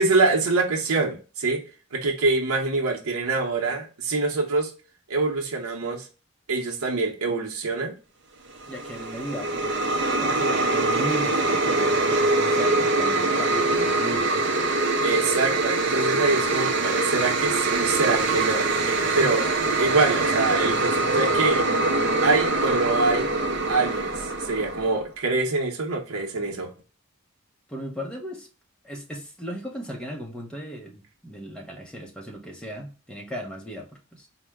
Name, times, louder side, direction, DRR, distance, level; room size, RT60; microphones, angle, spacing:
voice 1, 0.0-1.6 1.9-4.7 5.1-6.1 6.5-7.9 15.0-18.7 19.1-19.5 19.8-21.6 22.2-23.3 23.7-24.1 24.4-26.7, right 3 dB, 85° right, 0.8 m, -24 dB
sound 1, 8.6-25.0, right 2 dB, 55° right, 0.5 m, -24 dB
voice 2, 8.7-14.5 19.0-19.5 27.7-28.5 28.8-34.3, equal, 5° left, 0.7 m, -37 dB
4.3 x 2.1 x 3.4 m
head